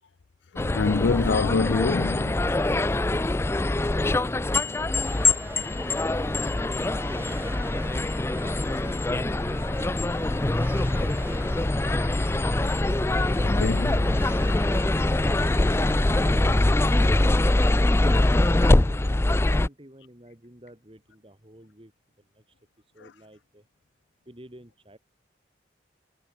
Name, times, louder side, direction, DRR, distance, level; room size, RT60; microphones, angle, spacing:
voice 1, 0.5-2.6 13.3-14.2, left 4 dB, 75° left, 0.5 m, -26 dB
sound 1, 0.6-19.7, left 2 dB, 15° left, 0.3 m, -23 dB
sound 2, 5.0-18.7, right 1 dB, 10° right, 1.2 m, -43 dB
voice 2, 19.2-21.9 22.2-23.7 24.3-25.0, right 1 dB, 30° right, 2.6 m, -54 dB
head